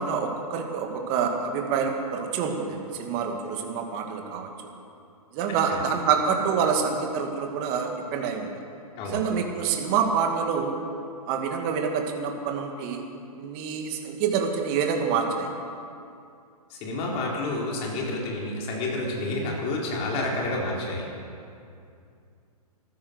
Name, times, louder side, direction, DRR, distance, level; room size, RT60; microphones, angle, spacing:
voice 1, 0.0-4.5 5.3-8.5 9.0-10.7 11.3-13.0 13.3-15.5, right 6 dB, 35° right, 3 dB, 2.1 m, -27 dB
voice 2, 16.7-21.1, left 2 dB, 30° left, -2 dB, 3.9 m, -29 dB
14.5 x 12.5 x 6.9 m, 2.5 s
hypercardioid pair, 130°, 20 cm